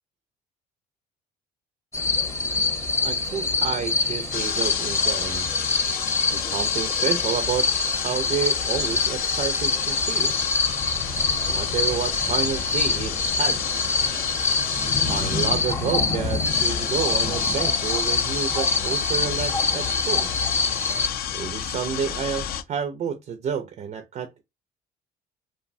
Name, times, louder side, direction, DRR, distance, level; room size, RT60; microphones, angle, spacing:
sound 1, 1.9-21.1, left 4 dB, 15° left, 0.6 m, -25 dB
voice 1, 3.0-5.5 6.3-7.8 8.0-10.3 11.5-13.6 15.1-20.3 21.3-24.4, right 7 dB, 45° right, 0.4 m, -30 dB
sound 2, 4.3-22.6, left 10 dB, 60° left, 0.4 m, -31 dB
2.7 x 2.1 x 2.5 m
cardioid pair, 110°, 17 cm